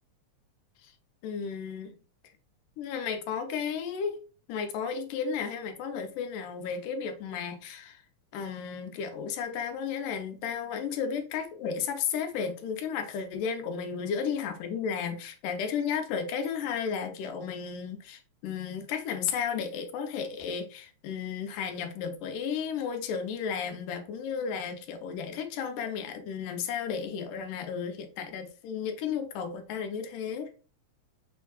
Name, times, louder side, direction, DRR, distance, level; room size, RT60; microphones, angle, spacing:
voice 1, 1.2-2.0 2.8-4.1 4.5-8.0 8.3-30.5, left 6 dB, 90° left, 2.4 m, -33 dB
6.3 x 3.5 x 2.3 m
omnidirectional pair, 3.6 m